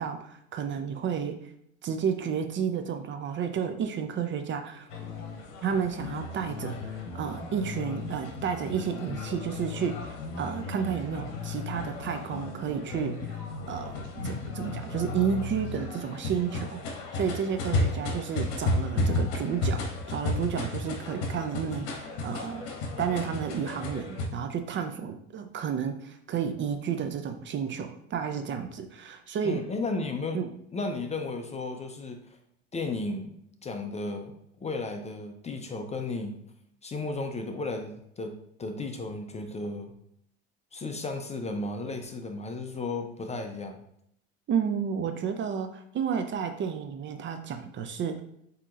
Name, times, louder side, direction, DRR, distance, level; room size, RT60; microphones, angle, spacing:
voice 1, 0.0-1.4 1.8-4.9 5.6-13.4 13.7-22.6 23.0-29.6 30.3-30.5 44.5-48.2, right 7 dB, 35° right, 7 dB, 0.5 m, -31 dB
sound 1, 4.9-24.3, left 2 dB, 60° left, 1.0 m, -34 dB
voice 2, 29.4-30.4 30.7-32.4 32.7-33.4 33.6-34.3 34.6-36.4 36.8-39.9 40.7-43.8, left 3 dB, 20° left, 5 dB, 0.5 m, -34 dB
7.3 x 2.9 x 2.5 m, 0.73 s
hypercardioid pair, 90°, 35 cm